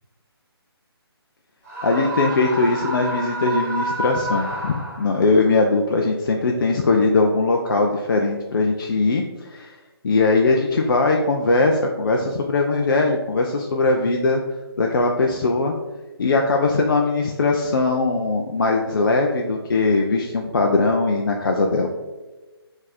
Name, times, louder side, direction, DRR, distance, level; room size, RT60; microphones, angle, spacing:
Screaming, 1.6-5.3, equal, 35° right, 1.2 m, -28 dB
voice 1, 1.8-9.7 10.0-14.4 14.8-15.7 16.2-21.9, left 3 dB, 55° left, 2 dB, 0.4 m, -20 dB
3.9 x 2.7 x 4.1 m, 1.1 s
figure-of-eight pair, 150°, 13 cm